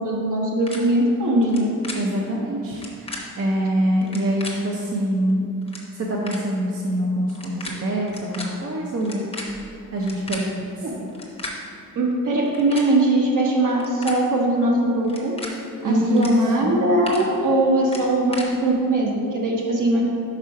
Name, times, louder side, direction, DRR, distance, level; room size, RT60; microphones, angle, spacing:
voice 1, 0.0-1.7 10.8-10.9 11.9-15.3 15.8-20.0, right 1 dB, 60° right, -2 dB, 1.2 m, -20 dB
sound 1, 0.7-0.8 1.4-2.0 2.7-3.2 4.0-4.5 5.3-5.4 5.6-5.8 6.3-6.4 7.3-7.7 8.0-8.4 9.0-10.4 11.1-11.5 12.4-12.9 13.6-14.2 15.0-15.5 16.1-16.3 16.7-17.2 17.9-18.5, left 2 dB, 15° left, 0.8 m, -35 dB
voice 2, 1.9-5.5 5.9-9.3 9.9-11.1 15.8-16.8, equal, 45° right, -2 dB, 0.6 m, -25 dB
5.0 x 4.5 x 5.6 m, 2.7 s
wide cardioid pair, 170°, 34 cm